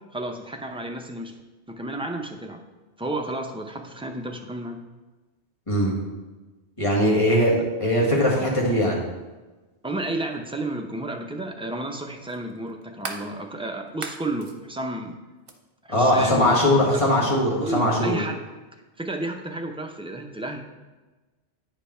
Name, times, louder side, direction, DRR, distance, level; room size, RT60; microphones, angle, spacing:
voice 1, 0.1-1.3 1.7-2.6 3.0-4.8 9.8-15.2 15.8-16.6 17.2-18.4 19.0-20.6, right 1 dB, 5° right, 2 dB, 0.5 m, -32 dB
voice 2, 6.8-9.0 15.9-18.2, left 1 dB, 30° left, -3 dB, 1.9 m, -20 dB
sound 1, 10.3-10.4 12.3-13.3 13.9-14.6 15.4-15.6, right 4 dB, 55° right, 1.0 m, -36 dB
9.3 x 5.2 x 4.4 m, 1.2 s
omnidirectional pair, 1.1 m